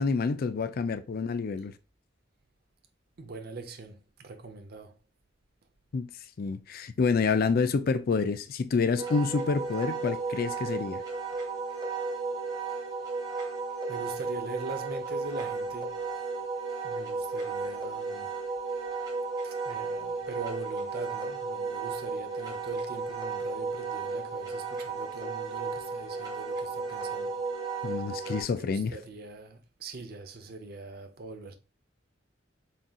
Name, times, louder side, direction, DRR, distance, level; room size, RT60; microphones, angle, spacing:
voice 1, 0.0-1.7 5.9-6.1 6.4-11.0 27.8-28.9, left 4 dB, 55° left, 0.4 m, -28 dB
voice 2, 3.2-5.0 13.9-15.9 16.8-18.3 19.4-27.4 28.5-31.5, right 3 dB, 55° right, 0.7 m, -42 dB
Wind instrument woodwind instrument, 9.0-28.4, right 4 dB, 20° right, 1.3 m, -34 dB
4.1 x 3.7 x 2.3 m
head